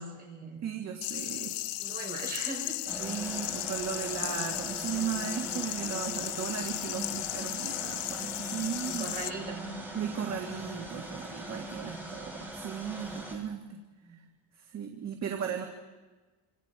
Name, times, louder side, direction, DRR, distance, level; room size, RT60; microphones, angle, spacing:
voice 1, 0.0-0.6 1.8-2.9 6.2-6.4 8.8-9.7 14.0-14.2, right 3 dB, 20° right, -2 dB, 6.1 m, -40 dB
voice 2, 0.6-1.6 3.0-9.1 9.9-13.8 14.6-15.6, right 8 dB, 35° right, 2 dB, 1.8 m, -36 dB
sound 1, 1.0-9.3, left 16 dB, 70° left, 0.8 m, -35 dB
sound 2, 2.9-13.3, right 1 dB, 5° right, 4.7 m, -41 dB
27.5 x 26.5 x 4.7 m, 1.3 s
cardioid pair, 165°, 44 cm